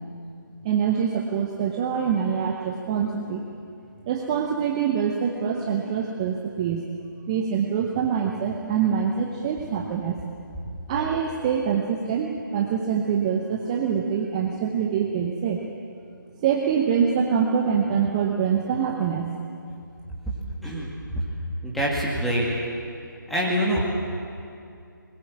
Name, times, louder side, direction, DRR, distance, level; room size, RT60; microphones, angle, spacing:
voice 1, 0.6-3.4 4.1-6.9 7.3-10.2 10.9-15.6 16.4-19.3, right 7 dB, 15° right, 2 dB, 0.8 m, -25 dB
voice 2, 21.6-22.5 23.3-23.8, equal, ahead, -5 dB, 2.1 m, -25 dB
20.5 x 18.0 x 7.4 m, 2.5 s
figure-of-eight pair, 155°, 11 cm